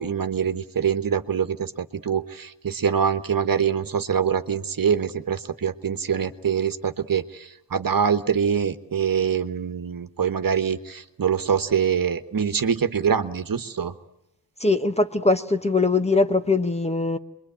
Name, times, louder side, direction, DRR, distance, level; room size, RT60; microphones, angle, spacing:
voice 1, 0.0-13.9, right 7 dB, 50° right, 1.4 m, -24 dB
voice 2, 14.6-17.2, left 3 dB, 15° left, 1.0 m, -21 dB
28.5 x 23.0 x 8.9 m
wide cardioid pair, 105°, 42 cm